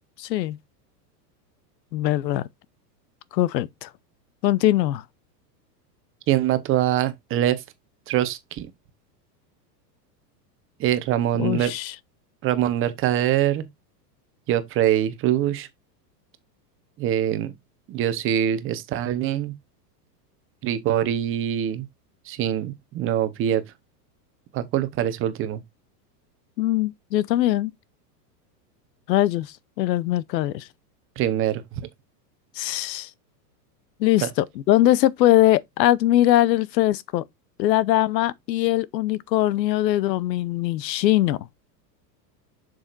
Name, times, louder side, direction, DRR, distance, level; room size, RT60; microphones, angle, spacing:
voice 1, 0.2-0.6 1.9-2.4 3.3-3.9 4.4-5.0 11.4-11.9 26.6-27.7 29.1-30.7 32.6-33.1 34.0-37.2 37.6-41.4, left 14 dB, 90° left, 0.8 m, -21 dB
voice 2, 6.3-7.6 8.1-8.7 10.8-11.7 12.4-13.7 14.5-15.7 17.0-17.5 17.9-19.5 20.6-21.8 22.3-23.6 24.5-25.6 31.2-31.8 34.2-34.3, right 11 dB, 25° right, 1.0 m, -23 dB
7.3 x 6.4 x 2.5 m
supercardioid pair, 150°, 49 cm